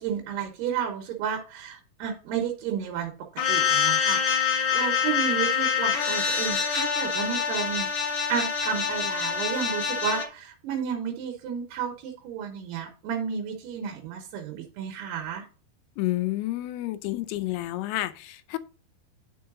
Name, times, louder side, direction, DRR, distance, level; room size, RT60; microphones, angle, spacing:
voice 1, 0.0-3.1 3.5-15.4, right 8 dB, 80° right, 3.1 m, -32 dB
sound 1, 3.4-10.3, left 7 dB, 60° left, 1.8 m, -25 dB
voice 2, 16.0-18.6, left 17 dB, 80° left, 2.6 m, -30 dB
9.4 x 4.7 x 3.6 m
omnidirectional pair, 4.7 m